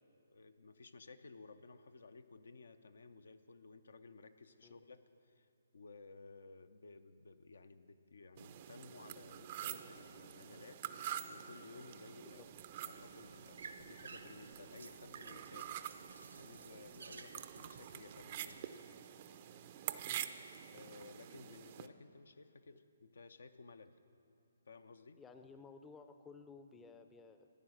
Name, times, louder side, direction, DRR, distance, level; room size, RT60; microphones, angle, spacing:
voice 1, 0.3-5.5 5.7-10.8 11.3-12.5 12.8-15.8 16.3-18.7 20.7-24.0 24.7-25.2, left 4 dB, 75° left, 10 dB, 0.6 m, -56 dB
sound 1, 8.4-21.9, right 10 dB, 40° right, 0.5 m, -47 dB
sound 2, 12.3-18.5, right 4 dB, 75° right, 0.9 m, -56 dB
voice 2, 25.2-27.5, left 4 dB, 10° left, 7 dB, 0.5 m, -56 dB
14.5 x 9.7 x 6.3 m, 2.6 s
figure-of-eight pair, 140°, 0 cm